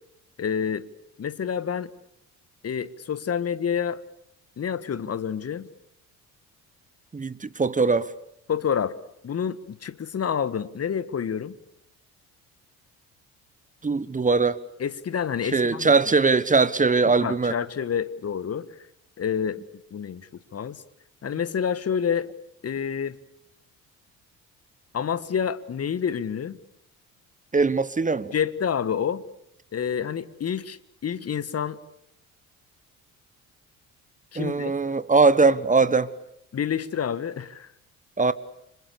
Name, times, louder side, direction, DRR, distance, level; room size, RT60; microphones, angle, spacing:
voice 1, 0.4-0.8 1.2-1.9 2.6-4.0 4.6-5.7 8.5-8.9 9.2-11.5 14.8-15.9 17.2-18.7 19.2-19.6 19.9-20.8 21.2-22.3 22.6-23.2 24.9-26.6 28.3-29.2 29.7-30.8 31.0-31.8 34.3-34.7 36.5-37.7, left 7 dB, 35° left, 1.6 m, -28 dB
voice 2, 7.1-8.1 13.8-14.6 15.5-17.6 27.5-28.3 34.4-36.1 38.2-38.3, right 4 dB, 20° right, 1.2 m, -21 dB
29.0 x 26.0 x 6.8 m
figure-of-eight pair, 50°, 42 cm